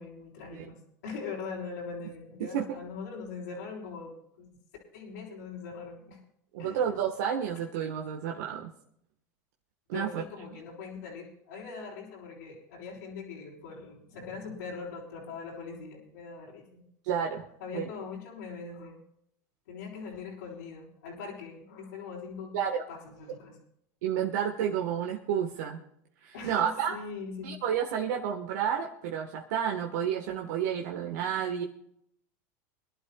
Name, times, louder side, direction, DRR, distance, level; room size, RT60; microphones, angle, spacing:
voice 1, 0.0-4.5 4.9-6.2 6.6-6.8 9.9-16.8 17.6-19.0 19.7-22.5 22.9-23.6 26.3-27.5, left 5 dB, 85° left, -7 dB, 4.4 m, -41 dB
voice 2, 6.5-8.7 9.9-10.2 17.0-17.4 17.7-17.9 22.5-22.8 24.0-25.8 26.2-26.9 27.4-31.6, right 8 dB, 80° right, 1 dB, 1.4 m, -30 dB
25.5 x 11.5 x 2.4 m, 0.73 s
supercardioid pair, 105°, 9 cm